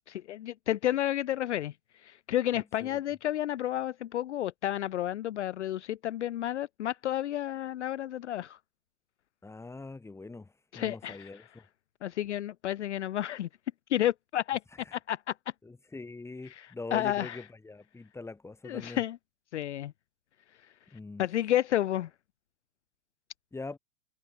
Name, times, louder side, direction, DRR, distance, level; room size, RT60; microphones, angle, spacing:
voice 1, 0.1-1.7 2.0-8.6 10.7-11.3 12.0-13.5 13.9-14.6 14.9-15.3 16.5-17.4 18.6-19.2 19.5-19.9 21.2-22.1, left 12 dB, 60° left, 0.6 m, -31 dB
voice 2, 2.5-3.0 9.4-11.6 14.9-15.0 15.6-19.0 20.9-21.2 23.5-23.8, left 3 dB, 5° left, 3.8 m, -43 dB
figure-of-eight pair, 110°, 40 cm